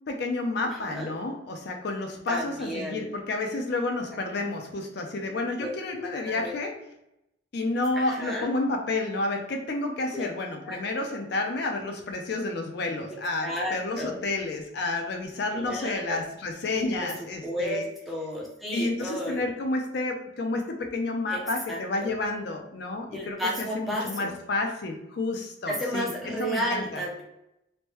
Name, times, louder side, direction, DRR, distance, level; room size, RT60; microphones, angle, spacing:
voice 1, 0.1-6.7 7.5-17.8 18.7-26.1 26.4-27.0, left 2 dB, 55° left, 3 dB, 0.4 m, -30 dB
voice 2, 0.6-1.1 2.3-3.1 5.6-6.6 7.9-8.5 10.1-10.3 10.6-11.1 13.4-14.2 15.5-16.2 16.8-17.1 17.4-19.5 21.3-21.4 21.7-22.1 23.1-24.4 25.7-27.2, equal, ahead, -4 dB, 0.5 m, -33 dB
3.1 x 2.1 x 2.9 m, 0.85 s
head